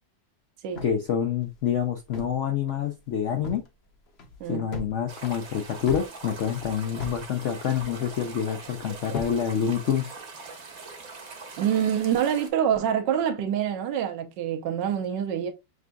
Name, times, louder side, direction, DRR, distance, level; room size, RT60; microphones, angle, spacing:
voice 1, 0.8-3.7 4.5-10.1, left 8 dB, 80° left, 0.6 m, -27 dB
sound 1, 0.8-2.5 2.7-2.8 3.2-3.7 4.1-4.9 5.2-7.3 7.5-8.2 8.7-9.4, left 2 dB, 50° left, 0.8 m, -38 dB
sound 2, 5.1-12.5, right 4 dB, 45° right, 1.1 m, -42 dB
voice 2, 11.6-15.5, right 9 dB, 75° right, 1.4 m, -26 dB
6.4 x 2.5 x 2.2 m
omnidirectional pair, 1.9 m